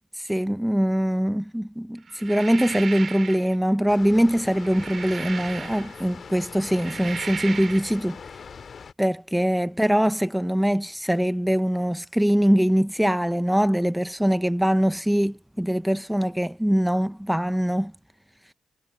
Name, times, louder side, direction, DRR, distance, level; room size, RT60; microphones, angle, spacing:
voice 1, 0.1-8.2 9.0-17.9, equal, 5° right, 0.7 m, -23 dB
sound 1, 2.1-3.6 4.4-6.1 6.6-8.0, right 5 dB, 55° right, 2.5 m, -36 dB
Water, 3.9-8.9, left 6 dB, 55° left, 2.1 m, -42 dB
supercardioid pair, 55°, 0 cm